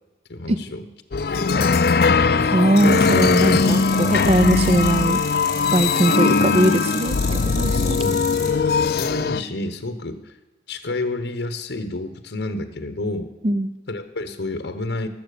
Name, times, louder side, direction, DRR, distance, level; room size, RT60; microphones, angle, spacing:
voice 1, 0.3-0.9 1.3-1.5 7.7-8.5 8.8-10.4 10.7-13.3 13.9-15.1, left 2 dB, 75° left, 9 dB, 1.0 m, -30 dB
sound 1, 1.1-9.4, left 4 dB, 60° left, 0.5 m, -20 dB
voice 2, 2.5-5.2 5.7-7.1 7.5-8.0 13.4-13.7, right 1 dB, 35° right, 11 dB, 0.4 m, -20 dB
sound 2, 2.8-8.5, left 5 dB, 20° left, 3.4 m, -34 dB
18.5 x 7.4 x 6.7 m, 1.2 s
head